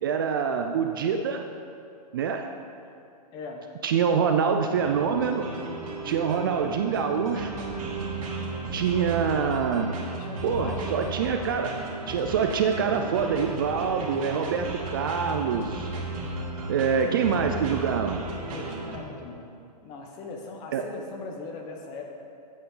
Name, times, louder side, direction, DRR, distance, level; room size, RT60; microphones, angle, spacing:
voice 1, 0.0-1.4 2.1-2.5 3.8-5.5 6.0-7.6 8.7-9.9 10.4-15.9 16.7-18.2 20.7-20.8, right 6 dB, 30° right, 5 dB, 0.4 m, -25 dB
voice 2, 3.3-3.6 8.8-9.1 10.2-10.9 18.5-19.5 19.8-22.2, left 3 dB, 20° left, 2 dB, 1.0 m, -39 dB
sound 1, 4.7-19.0, right 3 dB, 55° right, 2.5 m, -34 dB
14.0 x 8.6 x 3.8 m, 2.5 s
hypercardioid pair, 170°, 21 cm